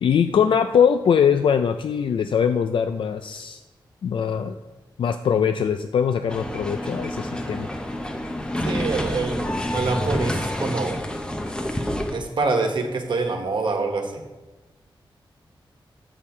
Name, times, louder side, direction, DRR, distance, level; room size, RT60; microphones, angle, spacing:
voice 1, 0.0-3.6 4.0-4.5 5.0-7.7, left 7 dB, 70° left, 8 dB, 0.3 m, -21 dB
sound 1, 6.3-12.2, left 1 dB, 10° left, 0.7 m, -28 dB
voice 2, 8.6-11.0 12.1-14.2, right 3 dB, 60° right, 4 dB, 1.2 m, -26 dB
8.3 x 7.3 x 4.3 m, 1.2 s
wide cardioid pair, 155°, 9 cm